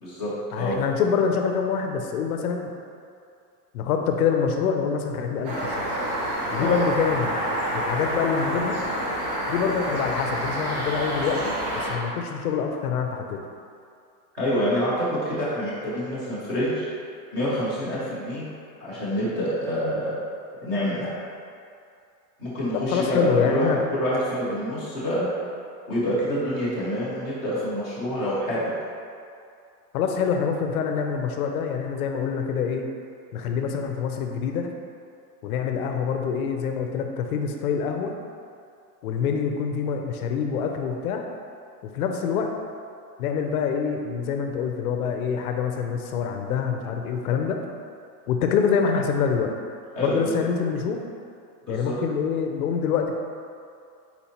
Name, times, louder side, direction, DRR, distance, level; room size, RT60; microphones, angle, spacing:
voice 1, 0.0-0.8 6.5-6.8 14.3-16.9 17.3-18.5 18.8-20.1 20.6-21.1 22.4-25.3 25.9-28.7 50.0-50.3 51.7-51.9, equal, 10° right, -13 dB, 0.5 m, -27 dB
voice 2, 0.5-2.7 3.7-5.9 6.5-7.3 7.7-8.8 9.5-13.4 22.7-23.8 29.9-32.9 33.3-34.7 35.4-38.1 39.0-41.2 41.8-42.5 43.2-47.6 48.3-49.5 50.0-51.0 51.7-53.2, left 6 dB, 65° left, 4 dB, 0.5 m, -26 dB
sound 1, 5.4-11.9, right 1 dB, 60° right, 1.3 m, -28 dB
4.2 x 4.1 x 2.9 m, 2.4 s
supercardioid pair, 170°, 49 cm